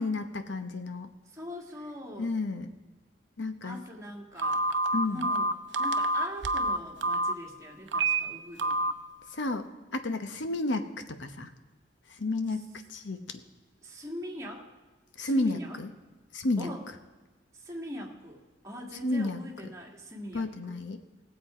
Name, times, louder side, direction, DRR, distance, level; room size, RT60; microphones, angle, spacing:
voice 1, 0.0-1.1 2.2-2.7 3.4-3.8 4.9-5.2 9.3-9.7 9.9-11.5 12.1-12.6 12.9-13.2 15.2-15.9 16.3-16.7 19.0-19.4 20.3-21.0, left 2 dB, 70° left, 8 dB, 0.9 m, -31 dB
voice 2, 1.3-2.3 3.6-4.7 5.1-5.5 5.8-8.9 13.8-14.7 15.2-15.8 16.6-16.8 17.5-20.8, left 1 dB, 15° right, -2 dB, 1.8 m, -41 dB
Telephone, 4.4-7.3 7.9-8.2 8.6-8.9, right 2 dB, 70° right, 0.7 m, -27 dB
18.0 x 7.8 x 4.9 m, 1.2 s
head